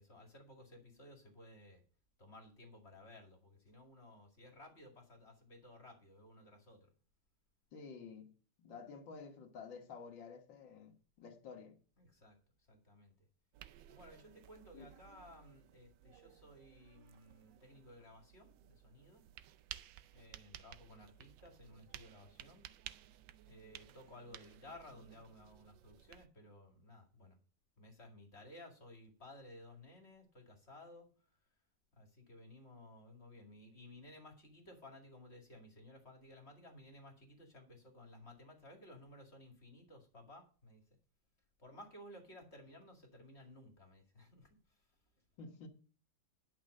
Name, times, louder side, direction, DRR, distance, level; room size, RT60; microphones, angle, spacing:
voice 1, 0.0-1.8 2.2-6.9 12.0-12.4 12.7-13.2 13.9-19.2 20.1-22.7 23.4-27.4 27.8-31.1 31.9-40.8 41.6-44.8, left 1 dB, 35° left, 2.4 m, -57 dB
voice 2, 7.7-8.3 8.6-11.8 14.7-14.9 45.4-45.7, left 5 dB, 90° left, 2.1 m, -51 dB
sound 1, 13.5-26.3, right 12 dB, 85° right, 1.4 m, -56 dB
11.0 x 5.9 x 6.4 m
omnidirectional pair, 2.0 m